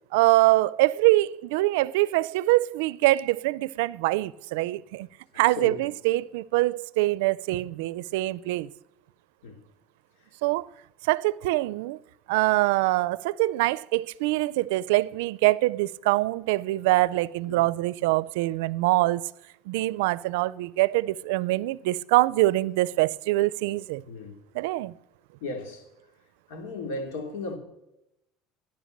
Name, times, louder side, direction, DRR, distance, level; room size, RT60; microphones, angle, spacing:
voice 1, 0.1-5.1 5.4-8.7 10.4-10.7 11.0-12.0 12.3-19.2 19.7-24.0 24.5-24.9, right 18 dB, 90° right, 0.4 m, -24 dB
voice 2, 24.1-24.4 25.4-25.9 26.5-27.6, left 3 dB, 90° left, 3.0 m, -35 dB
13.5 x 10.5 x 6.6 m
supercardioid pair, 120°, 0 cm